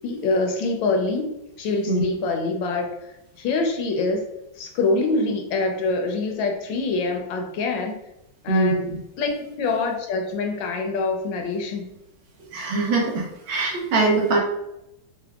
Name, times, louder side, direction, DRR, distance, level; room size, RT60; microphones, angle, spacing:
voice 1, 0.0-1.3 1.6-4.3 4.6-8.0 8.4-8.9 9.2-11.9, left 3 dB, 75° left, 3 dB, 1.4 m, -25 dB
voice 2, 8.5-8.8 12.5-14.4, right 3 dB, 75° right, -1 dB, 1.7 m, -22 dB
4.6 x 2.2 x 3.4 m, 0.87 s
omnidirectional pair, 2.2 m